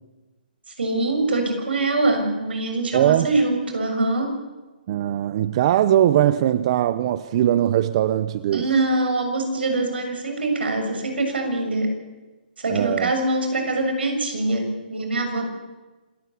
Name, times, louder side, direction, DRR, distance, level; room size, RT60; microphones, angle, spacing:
voice 1, 0.8-4.4 8.5-11.9 12.6-15.5, right 2 dB, 90° right, 5 dB, 7.0 m, -23 dB
voice 2, 2.9-3.3 4.9-8.7 12.7-13.1, right 12 dB, 35° right, 15 dB, 0.7 m, -20 dB
26.5 x 13.5 x 8.5 m, 1.2 s
hypercardioid pair, 160°, 5 cm